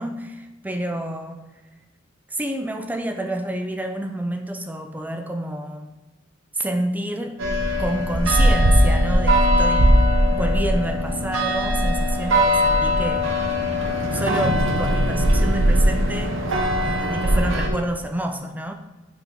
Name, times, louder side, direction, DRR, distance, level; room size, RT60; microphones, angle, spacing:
voice 1, 0.0-1.6 2.3-5.9 6.5-7.4 7.8-13.4 14.1-16.4 16.8-18.7, right 1 dB, 10° right, 5 dB, 0.5 m, -28 dB
sound 1, 7.4-17.7, equal, 75° right, 1.0 m, -19 dB
5.8 x 4.9 x 5.0 m, 1.1 s
head